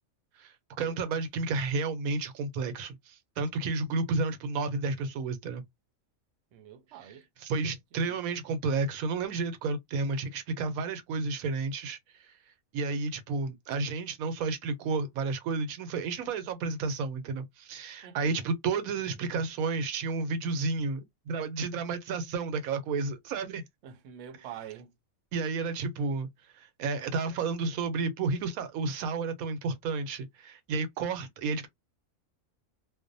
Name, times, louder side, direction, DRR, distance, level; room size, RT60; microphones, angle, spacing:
voice 1, 0.4-5.6 7.4-12.0 12.7-23.6 25.3-26.3 26.6-31.7, right 4 dB, 85° right, 1.1 m, -31 dB
voice 2, 6.5-7.6 8.0-8.2 18.0-18.5 23.8-24.9, right 9 dB, 65° right, 0.8 m, -47 dB
2.5 x 2.1 x 2.5 m
omnidirectional pair, 1.4 m